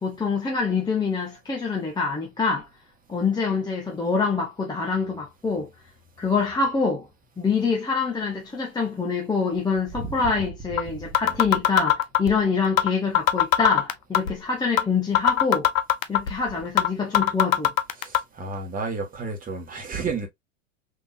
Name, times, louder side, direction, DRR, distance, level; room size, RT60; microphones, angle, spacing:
voice 1, 0.0-2.7 3.1-5.7 6.2-7.1 7.4-15.7 16.1-17.7, left 4 dB, 10° left, 0.8 m, -25 dB
sound 1, 10.3-10.4 10.8-10.9 11.1-12.3 12.8-12.9 13.1-14.3 14.8-14.9 15.1-16.3 16.8-16.9 17.1-18.2, left 10 dB, 75° left, 0.7 m, -19 dB
voice 2, 18.0-20.3, right 4 dB, 20° right, 1.4 m, -31 dB
3.6 x 3.0 x 2.6 m
hypercardioid pair, 100°, 40 cm